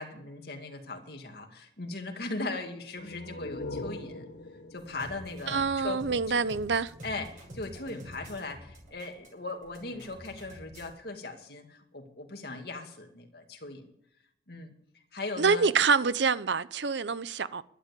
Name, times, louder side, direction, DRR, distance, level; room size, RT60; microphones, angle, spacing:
voice 1, 0.0-4.3 4.7-6.4 7.0-13.9 14.5-14.7 15.1-15.7, left 2 dB, 60° left, 2.3 m, -39 dB
sound 1, 2.9-6.5, left 2 dB, 80° left, 1.4 m, -42 dB
sound 2, 4.8-10.9, equal, 45° right, 6.6 m, -47 dB
voice 2, 5.5-6.9 15.4-17.6, right 5 dB, 75° right, 0.7 m, -26 dB
12.0 x 10.0 x 8.4 m
head